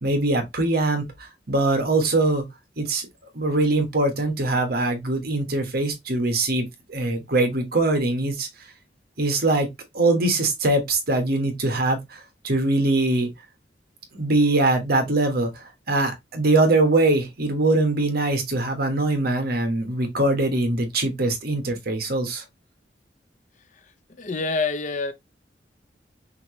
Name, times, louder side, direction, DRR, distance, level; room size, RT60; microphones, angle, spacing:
voice 1, 0.0-2.4 2.8-3.1 3.3-8.5 9.2-9.7 9.9-13.3 14.1-22.4, right 2 dB, 60° right, 1.4 m, -22 dB
voice 2, 23.7-25.1, left 3 dB, 45° left, 0.6 m, -28 dB
5.7 x 2.8 x 3.0 m
head